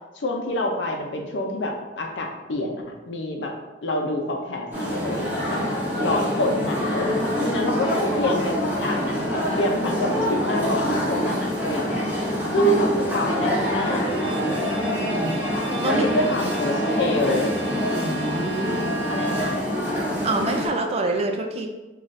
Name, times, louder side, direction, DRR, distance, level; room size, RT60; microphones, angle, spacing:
voice 1, 0.2-3.5 3.8-5.6 6.0-7.1 7.4-12.1 12.5-14.1 15.8-17.5 19.1-19.6, left 1 dB, 70° left, 2 dB, 0.5 m, -26 dB
sound 1, 4.7-20.7, equal, 10° right, 1.0 m, -25 dB
Bowed string instrument, 13.8-19.9, right 2 dB, 90° right, 0.7 m, -36 dB
voice 2, 14.9-15.4 15.8-16.0 17.9-18.9 20.2-21.7, right 2 dB, 35° right, 3 dB, 0.4 m, -27 dB
4.0 x 2.4 x 3.1 m, 1.1 s
head